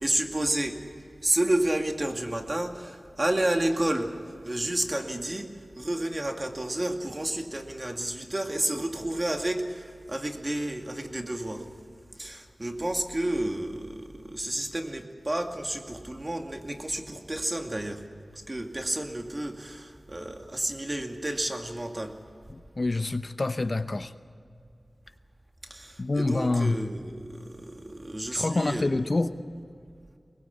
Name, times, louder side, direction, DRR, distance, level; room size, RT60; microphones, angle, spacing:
voice 1, 0.0-0.8 1.2-4.1 4.4-5.5 5.8-9.6 10.1-11.6 12.2-18.0 18.5-22.1 25.7-28.9, right 1 dB, 35° right, 4 dB, 2.3 m, -30 dB
voice 2, 22.5-24.1 26.0-26.9 28.3-29.4, left 2 dB, 50° left, 10 dB, 0.9 m, -27 dB
23.0 x 20.5 x 8.3 m, 2.3 s
wide cardioid pair, 50°, 0 cm